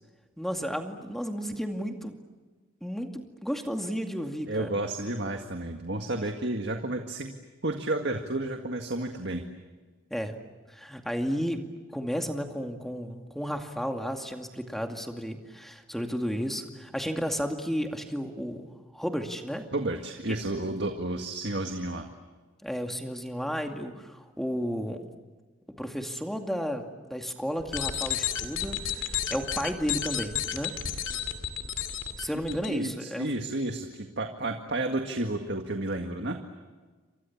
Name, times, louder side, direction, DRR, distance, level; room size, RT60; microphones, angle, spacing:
voice 1, 0.4-2.1 2.8-4.7 10.1-10.4 10.7-11.6 11.9-19.7 20.3-20.4 22.6-25.1 25.8-30.7 32.2-33.3, equal, ahead, 4 dB, 2.3 m, -33 dB
voice 2, 4.5-7.3 7.6-9.4 19.7-22.1 32.5-36.4, right 2 dB, 55° right, 4 dB, 1.9 m, -31 dB
sound 1, 27.6-32.7, left 9 dB, 70° left, 2.4 m, -32 dB
29.5 x 26.5 x 7.3 m, 1.3 s
head